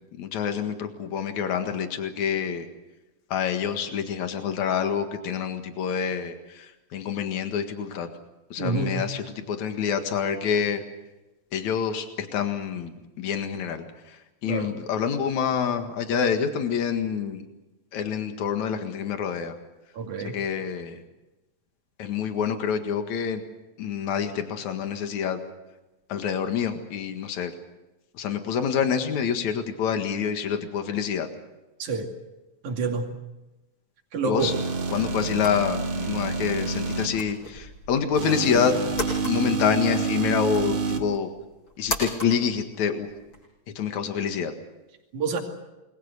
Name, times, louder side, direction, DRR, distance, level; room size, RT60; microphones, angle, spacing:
voice 1, 0.2-2.7 3.3-8.1 8.5-10.8 11.5-13.9 14.4-17.4 17.9-19.5 20.2-21.0 22.0-23.4 23.8-25.4 26.1-27.5 28.1-31.3 34.2-34.5 34.9-38.8 39.2-41.3 41.8-43.1 43.8-44.5, left 7 dB, 75° left, 6 dB, 3.2 m, -27 dB
voice 2, 8.6-9.0 14.5-14.7 20.0-20.3 31.8-32.1 32.6-33.1 34.1-34.5 45.1-45.4, right 4 dB, 90° right, 2 dB, 4.0 m, -27 dB
sound 1, 34.4-37.1 38.1-41.0, right 4 dB, 60° right, 3.5 m, -28 dB
sound 2, 35.4-43.5, left 1 dB, 40° left, 8.6 m, -38 dB
28.0 x 22.5 x 6.7 m, 1.0 s
omnidirectional pair, 3.3 m